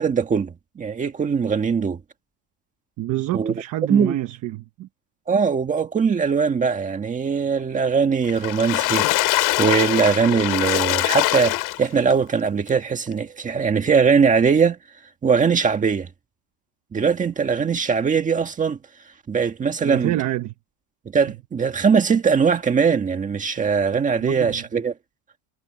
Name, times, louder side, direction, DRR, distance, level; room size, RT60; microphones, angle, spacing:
voice 1, 0.0-2.0 3.3-3.5 3.9-4.1 5.3-14.8 15.2-16.1 16.9-18.8 19.3-20.1 21.1-24.9, right 6 dB, 15° right, 1.7 m, -21 dB
voice 2, 3.0-4.9 19.8-20.5 21.3-21.4 24.2-24.7, right 15 dB, 35° right, 1.2 m, -27 dB
Water / Splash splatter, 8.3-12.1 12.7-12.8 13.1-13.2, left 21 dB, 50° left, 3.0 m, -22 dB
cardioid pair, 175°, 49 cm